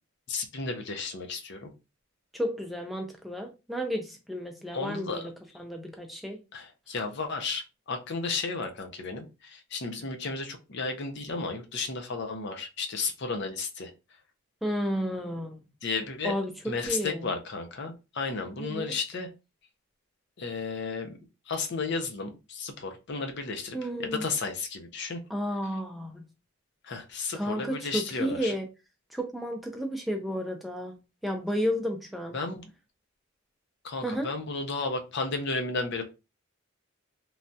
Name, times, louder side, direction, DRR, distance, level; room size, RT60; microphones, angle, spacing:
voice 1, 0.3-1.7 4.7-5.3 6.5-13.9 15.8-16.3 16.7-19.3 20.4-21.2 21.5-25.2 26.8-28.5 32.3-32.7 33.8-36.0, left 4 dB, 55° left, 5 dB, 0.6 m, -33 dB
voice 2, 2.3-5.3 5.6-6.4 14.6-15.6 16.2-16.5 16.9-17.3 18.6-18.9 23.7-24.2 25.3-26.2 27.3-28.7 29.1-31.0 31.2-32.4 34.0-34.3, equal, ahead, 2 dB, 0.3 m, -32 dB
3.1 x 2.2 x 2.6 m, 0.28 s
head